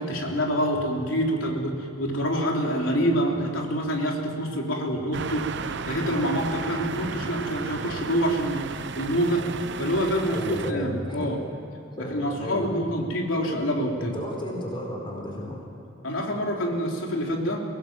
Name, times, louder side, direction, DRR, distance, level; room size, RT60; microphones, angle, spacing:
voice 1, 0.0-5.4 5.9-9.5 9.8-11.4 12.0-14.1 16.0-17.6, equal, 90° left, 0 dB, 3.6 m, -26 dB
sound 1, 5.1-10.7, right 4 dB, 65° right, 0.8 m, -34 dB
voice 2, 10.2-11.3 12.0-12.7 14.0-15.6, equal, 25° left, -1 dB, 4.7 m, -33 dB
23.5 x 18.5 x 7.6 m, 2.8 s
head